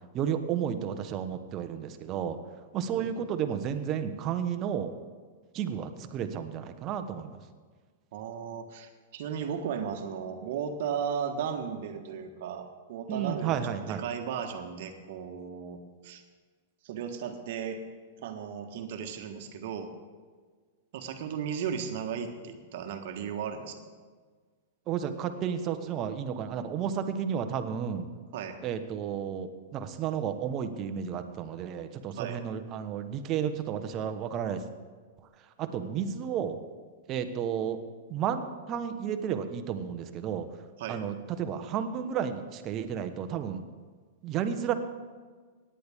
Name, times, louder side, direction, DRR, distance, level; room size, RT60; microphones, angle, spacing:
voice 1, 0.1-2.4 2.7-4.9 5.5-7.4 13.1-14.0 24.9-28.1 28.6-34.6 35.6-36.6 37.1-37.8 38.1-40.5 40.9-43.6 44.2-44.7, right 8 dB, 35° right, 8 dB, 1.1 m, -32 dB
voice 2, 8.1-16.2 16.8-17.8 18.2-19.9 20.9-23.8 28.3-28.6 32.2-32.4 40.8-41.1, right 7 dB, 60° right, 5 dB, 1.5 m, -35 dB
18.0 x 10.0 x 3.6 m, 1.5 s
hypercardioid pair, 115°, 0 cm